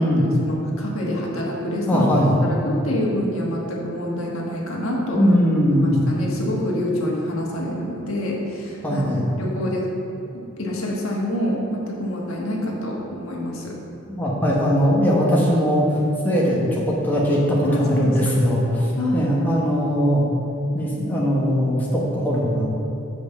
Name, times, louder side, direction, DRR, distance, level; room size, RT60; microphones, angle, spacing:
voice 1, 0.4-2.1 2.4-5.2 5.7-9.1 9.4-9.9 10.3-13.8 17.6-18.2 19.0-19.2, left 1 dB, 80° left, -2 dB, 1.5 m, -26 dB
voice 2, 1.9-2.3 5.1-6.0 8.8-9.3 14.1-16.0 16.2-20.2 20.7-22.7, equal, 10° left, -6 dB, 1.2 m, -20 dB
6.1 x 5.3 x 6.9 m, 3.0 s
head